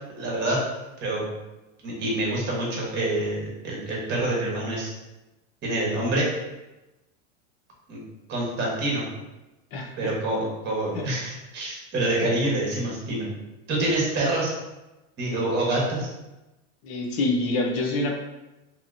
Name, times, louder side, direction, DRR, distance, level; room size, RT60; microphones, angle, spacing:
voice 1, 0.1-0.6 1.0-1.2 1.8-4.9 5.6-6.3 7.9-8.0 8.3-9.0 10.0-13.3 13.7-14.5 15.2-16.1, right 1 dB, 25° right, -4 dB, 1.1 m, -26 dB
voice 2, 9.7-10.1 10.9-11.0 16.8-18.2, left 2 dB, 35° left, 1 dB, 0.5 m, -26 dB
2.9 x 2.8 x 2.5 m, 1.0 s
supercardioid pair, 135°, 38 cm